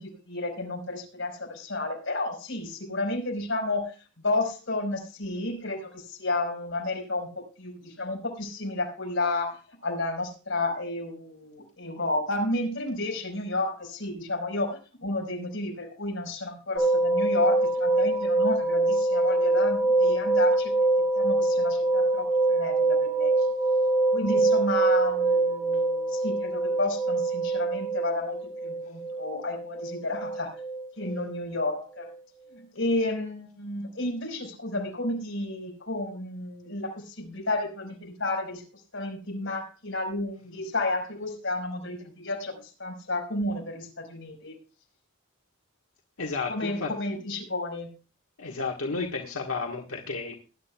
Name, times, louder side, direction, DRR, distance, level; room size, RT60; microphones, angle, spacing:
voice 1, 0.0-3.9 4.2-20.7 21.1-23.3 24.1-28.4 28.6-30.6 31.0-32.1 32.5-38.6 38.9-44.5 46.5-47.9, left 2 dB, 65° left, 2 dB, 5.0 m, -31 dB
sound 1, 16.8-31.7 32.0-32.1, right 2 dB, 20° right, 3.6 m, -24 dB
voice 2, 46.2-46.9 48.4-50.3, left 4 dB, 90° left, 1 dB, 1.6 m, -32 dB
20.0 x 11.0 x 2.3 m, 0.33 s
head